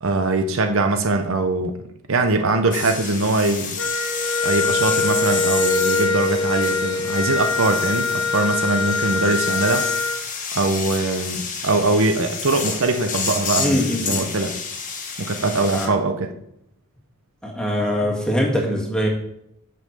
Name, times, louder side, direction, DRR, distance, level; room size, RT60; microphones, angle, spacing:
voice 1, 0.0-3.8 4.4-9.9 10.5-14.6 15.2-16.3, right 3 dB, 60° right, 7 dB, 0.8 m, -22 dB
sound 1, 2.7-15.9, left 5 dB, 35° left, 1.3 m, -30 dB
Wind instrument woodwind instrument, 3.8-10.2, left 3 dB, 55° left, 1.3 m, -23 dB
voice 2, 13.6-14.3 15.7-15.9 17.4-19.1, equal, 5° left, -2 dB, 1.8 m, -22 dB
7.9 x 5.6 x 6.6 m, 0.76 s
head